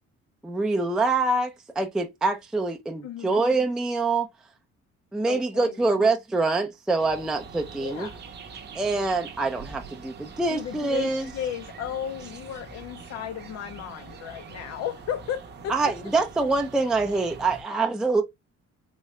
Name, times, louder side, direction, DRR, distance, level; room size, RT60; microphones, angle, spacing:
voice 1, 0.4-4.3 5.1-8.1 8.7-11.3 15.7-18.2, right 3 dB, 5° right, 0.3 m, -25 dB
voice 2, 3.0-3.4 5.3-6.0 7.8-8.2 10.5-16.1, left 9 dB, 60° left, 0.4 m, -35 dB
sound 1, 7.0-17.6, right 5 dB, 35° right, 0.6 m, -44 dB
3.7 x 2.2 x 3.0 m
cardioid pair, 160°, 29 cm